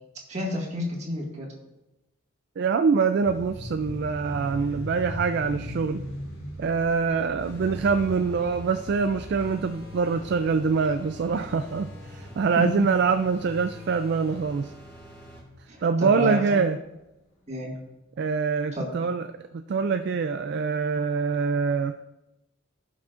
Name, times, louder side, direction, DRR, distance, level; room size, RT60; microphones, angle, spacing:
voice 1, 0.3-1.5 12.6-12.8 15.7-16.7 17.5-17.7 18.7-18.9, left 1 dB, 30° right, -2 dB, 1.9 m, -30 dB
voice 2, 2.6-6.0 6.6-14.7 15.8-16.8 18.2-19.3 19.5-21.9, right 5 dB, 50° right, 8 dB, 0.3 m, -24 dB
sound 1, 3.2-16.3, equal, 80° left, 2.7 m, -41 dB
sound 2, 7.4-15.4, left 1 dB, 10° left, 2.3 m, -44 dB
16.0 x 6.1 x 2.5 m, 0.98 s
head